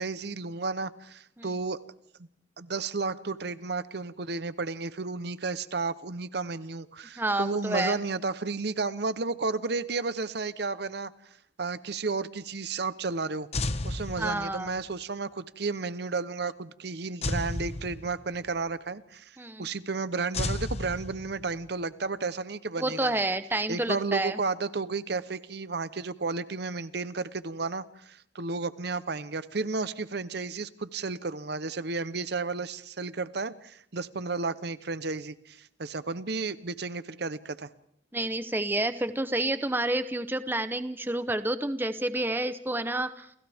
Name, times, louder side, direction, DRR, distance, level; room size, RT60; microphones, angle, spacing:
voice 1, 0.0-1.8 2.6-11.1 11.6-13.5 13.8-23.2 23.7-37.7, right 4 dB, 60° right, 0.8 m, -32 dB
voice 2, 7.2-8.0 14.2-14.7 19.4-19.7 22.8-24.4 38.1-43.3, right 1 dB, 10° right, 0.8 m, -29 dB
sound 1, 13.5-14.8 17.2-18.5 20.3-21.6, left 2 dB, 35° left, 1.0 m, -33 dB
29.0 x 29.0 x 3.5 m
head